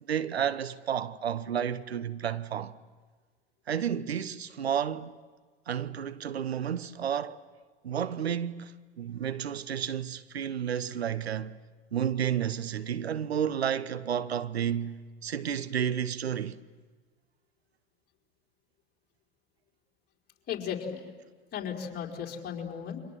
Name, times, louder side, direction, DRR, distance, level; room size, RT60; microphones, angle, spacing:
voice 1, 0.0-2.8 3.7-5.1 5.7-7.4 7.8-11.6 11.9-15.0 15.2-16.6, right 9 dB, 85° right, 1.0 m, -31 dB
voice 2, 20.5-21.0 21.5-23.0, left 8 dB, 30° left, 4.5 m, -35 dB
30.0 x 24.5 x 7.7 m
hypercardioid pair, 90°, 31 cm